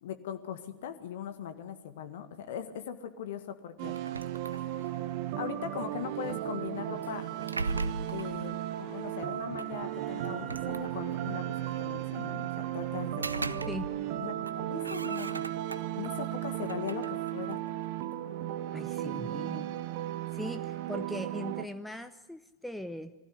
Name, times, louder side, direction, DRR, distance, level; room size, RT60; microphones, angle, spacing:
voice 1, 0.0-4.0 5.4-7.3 8.1-13.7 14.2-15.5 16.0-17.6, left 9 dB, 55° left, 8 dB, 1.7 m, -40 dB
sound 1, 3.8-21.7, right 13 dB, 45° right, 0.9 m, -35 dB
sound 2, 3.9-5.1 7.0-8.4 9.6-9.7 10.2-11.3 12.9-14.1 14.4-16.1 16.6-18.2, right 3 dB, 80° right, 0.6 m, -39 dB
Bowed string instrument, 9.5-14.6, equal, 30° left, 5.0 m, -54 dB
voice 2, 18.7-19.7 20.3-23.1, left 1 dB, 5° left, 9 dB, 0.8 m, -40 dB
21.5 x 15.5 x 8.2 m, 1.1 s
figure-of-eight pair, 90°, 0 cm